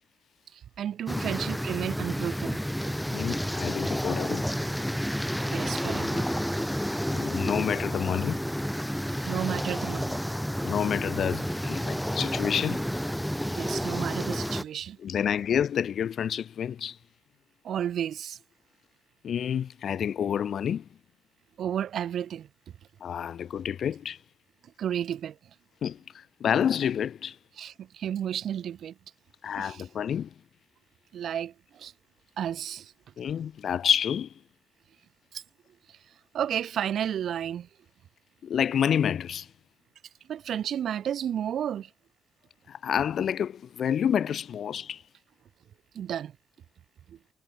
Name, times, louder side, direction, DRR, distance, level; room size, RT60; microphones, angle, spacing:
voice 1, 0.5-2.6 5.4-6.3 9.2-10.2 13.5-15.0 17.6-18.4 21.6-22.5 24.8-25.4 27.6-28.9 29.5-29.8 31.1-31.9 32.4-32.9 35.3-35.4 35.9-36.0 36.3-37.7 40.3-41.9 45.9-46.4 47.1-47.2, right 9 dB, 65° right, 1.7 m, -32 dB
sound 1, 1.1-14.6, equal, ahead, 2.0 m, -30 dB
voice 2, 3.1-4.5 7.1-8.4 10.6-12.9 15.0-17.0 19.2-20.9 23.0-24.2 25.8-27.4 29.4-30.3 33.2-34.3 38.4-39.5 42.7-45.0, left 8 dB, 60° left, 0.6 m, -28 dB
cardioid pair, 90°, 0 cm